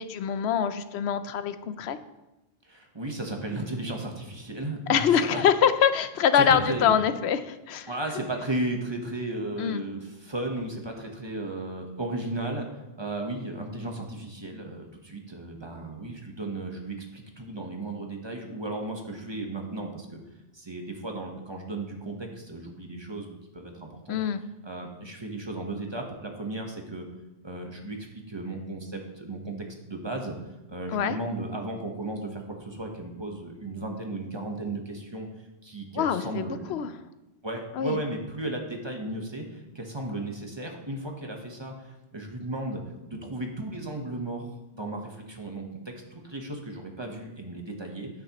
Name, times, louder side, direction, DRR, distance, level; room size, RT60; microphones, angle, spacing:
voice 1, 0.0-2.0 4.9-7.9 9.6-9.8 24.1-24.4 30.9-31.2 35.9-36.9 37.8-38.0, left 8 dB, 85° left, 12 dB, 0.9 m, -24 dB
voice 2, 2.6-5.4 6.4-7.0 7.9-20.2 20.5-24.2 24.6-27.0 27.4-30.3 30.7-35.3 35.6-36.7 37.4-48.1, right 2 dB, 25° right, 2 dB, 1.0 m, -35 dB
9.4 x 8.2 x 3.0 m, 1.0 s
omnidirectional pair, 1.1 m